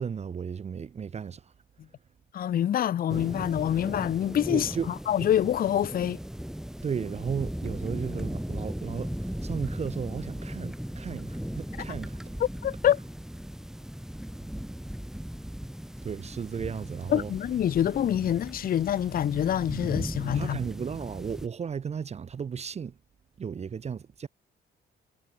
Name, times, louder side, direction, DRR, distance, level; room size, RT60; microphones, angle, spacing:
voice 1, 0.0-1.4 4.5-4.9 5.2-5.3 6.8-12.3 16.0-17.3 20.3-22.9 23.4-24.3, right 6 dB, 35° right, 0.6 m, -35 dB
voice 2, 2.3-6.2 12.4-13.0 17.1-20.6, left 10 dB, 45° left, 0.5 m, -26 dB
sound 1, 3.1-21.5, equal, ahead, 2.1 m, -37 dB
cardioid pair, 90°, 20 cm